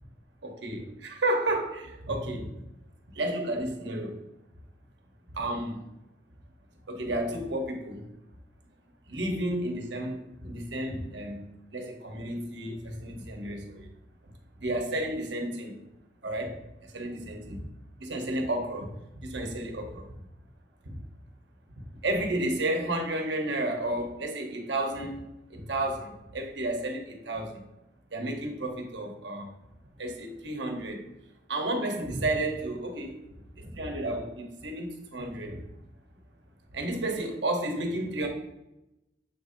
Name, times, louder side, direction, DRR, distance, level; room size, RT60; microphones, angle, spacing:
voice 1, 0.4-2.6 3.1-4.2 5.3-5.8 6.9-8.0 9.1-13.9 14.2-15.8 16.2-17.6 18.0-20.1 20.8-21.0 21.7-27.6 28.1-29.5 30.0-31.1 31.5-35.7 36.7-38.3, right 1 dB, 80° right, 3 dB, 1.2 m, -32 dB
7.3 x 2.8 x 5.0 m, 0.92 s
head